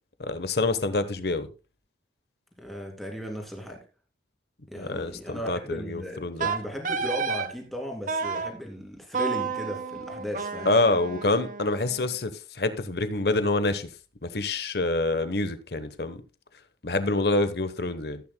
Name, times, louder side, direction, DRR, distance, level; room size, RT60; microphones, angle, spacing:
voice 1, 0.2-1.5 4.7-6.5 10.6-13.9 14.2-16.2 16.8-18.2, left 2 dB, 60° left, 1.0 m, -26 dB
voice 2, 2.6-3.8 4.7-10.7, equal, ahead, 2.4 m, -36 dB
Wind instrument woodwind instrument, 6.4-7.5 8.1-8.5 9.1-12.1, right 5 dB, 45° right, 0.8 m, -31 dB
15.0 x 8.9 x 2.2 m
head